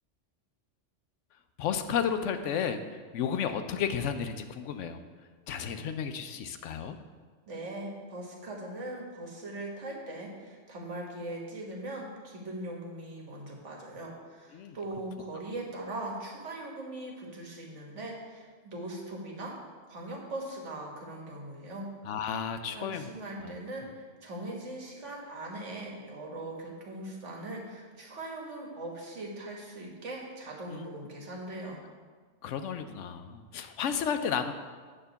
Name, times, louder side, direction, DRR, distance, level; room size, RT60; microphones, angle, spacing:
voice 1, 1.6-5.0 5.5-7.0 14.5-14.8 22.0-23.1 23.4-23.5 30.7-30.9 32.4-34.5, left 7 dB, 85° left, 8 dB, 1.0 m, -32 dB
voice 2, 7.5-19.5 19.9-21.9 22.7-31.8, right 1 dB, 75° right, -1 dB, 1.8 m, -40 dB
9.0 x 3.7 x 6.9 m, 1.5 s
omnidirectional pair, 1.2 m